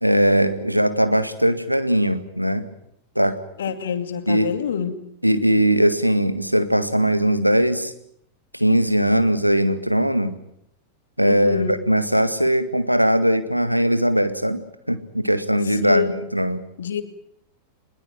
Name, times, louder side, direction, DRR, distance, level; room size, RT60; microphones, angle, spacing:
voice 1, 0.0-2.7 3.2-3.4 4.3-4.5 5.2-7.9 8.5-10.4 11.2-14.6 14.9-16.6, equal, 90° right, 11 dB, 1.9 m, -20 dB
voice 2, 3.6-5.0 11.2-11.7 15.8-16.2 16.8-17.0, left 7 dB, 65° left, 9 dB, 2.5 m, -26 dB
22.0 x 21.0 x 9.2 m, 0.73 s
figure-of-eight pair, 90°, 0 cm